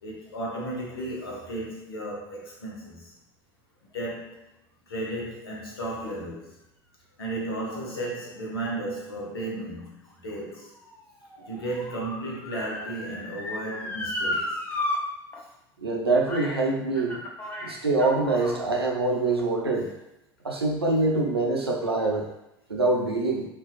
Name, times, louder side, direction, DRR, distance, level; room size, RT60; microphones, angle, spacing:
voice 1, 0.0-3.1 3.9-4.4 4.9-6.5 7.2-10.0 10.2-10.7 11.5-14.6, right 1 dB, 75° left, -3 dB, 0.7 m, -34 dB
Motor vehicle (road) / Siren, 9.8-15.0 15.3-15.4 16.3-16.6 16.9-18.6 19.3-19.4, left 1 dB, 15° left, 0.4 m, -34 dB
voice 2, 15.8-17.2 17.6-19.9 20.4-22.3 22.7-23.4, right 2 dB, 85° right, 0 dB, 0.4 m, -24 dB
2.5 x 2.3 x 2.3 m, 0.90 s
figure-of-eight pair, 75°, 13 cm